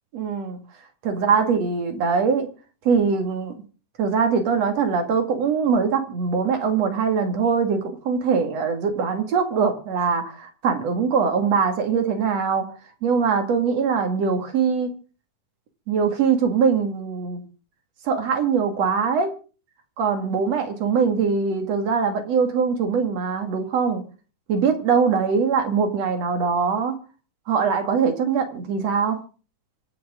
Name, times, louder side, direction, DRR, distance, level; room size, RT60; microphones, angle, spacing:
voice 1, 0.1-0.6 1.0-2.5 2.8-3.5 4.0-12.7 13.0-14.9 15.9-17.4 18.0-19.3 20.0-24.0 24.5-27.0 27.5-29.2, right 5 dB, 55° right, 3.2 m, -22 dB
25.5 x 9.7 x 3.8 m
omnidirectional pair, 3.6 m